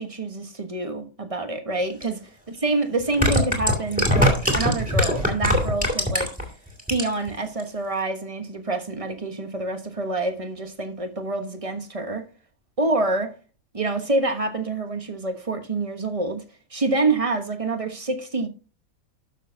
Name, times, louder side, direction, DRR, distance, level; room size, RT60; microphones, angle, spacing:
voice 1, 0.0-2.2 2.6-6.3 6.9-12.2 12.8-13.3 13.7-16.4 16.7-18.5, right 2 dB, 25° right, 1.3 m, -27 dB
sound 1, 2.0-2.1 3.0-6.4 6.8-7.3 7.6-7.7, equal, 5° right, 2.7 m, -21 dB
12.5 x 6.7 x 2.8 m
omnidirectional pair, 1.5 m